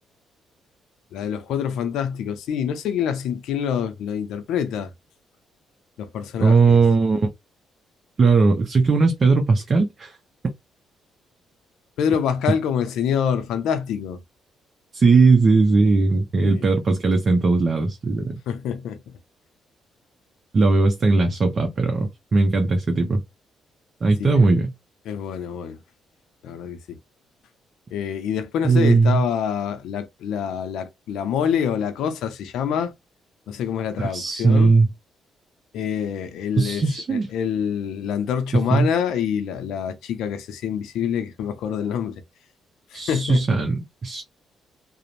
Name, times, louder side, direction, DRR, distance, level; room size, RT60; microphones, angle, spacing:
voice 1, 1.1-4.9 6.0-6.8 12.0-14.2 16.4-16.6 18.5-19.0 24.2-24.5 25.1-25.8 26.4-27.0 27.9-32.9 33.5-34.7 35.7-36.8 37.1-42.2 42.9-43.6, left 8 dB, 85° left, 0.4 m, -26 dB
voice 2, 6.4-7.3 8.2-10.1 14.9-18.4 20.5-23.2 24.0-24.7 28.6-29.2 34.0-34.9 36.6-37.3 38.5-38.9 42.9-44.2, right 4 dB, 40° right, 0.5 m, -18 dB
2.5 x 2.0 x 2.9 m
cardioid pair, 90°, 0 cm